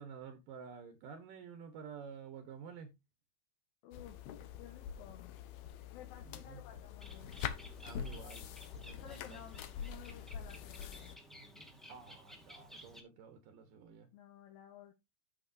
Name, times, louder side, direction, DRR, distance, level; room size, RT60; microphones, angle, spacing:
voice 1, 0.0-2.9 6.2-6.6 7.8-8.5 8.8-9.4 11.9-14.1, right 6 dB, 75° right, 2.7 m, -50 dB
voice 2, 3.8-4.3 4.6-5.3 5.9-7.4 8.9-11.2 14.1-14.9, left 10 dB, 90° left, 3.0 m, -55 dB
sound 1, 3.9-11.2, left 8 dB, 75° left, 1.7 m, -45 dB
Bird, 7.0-13.0, equal, ahead, 1.0 m, -55 dB
14.0 x 5.4 x 2.6 m
omnidirectional pair, 4.1 m